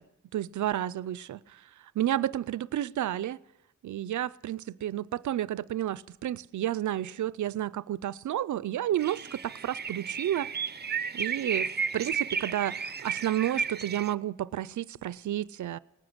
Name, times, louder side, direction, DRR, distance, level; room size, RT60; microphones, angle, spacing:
voice 1, 0.3-1.6 2.0-3.4 3.8-10.5 11.1-15.8, right 12 dB, 80° right, 0.5 m, -31 dB
sound 1, 9.0-14.1, right 6 dB, 35° right, 0.6 m, -33 dB
18.0 x 9.7 x 7.9 m
cardioid pair, 60°, 29 cm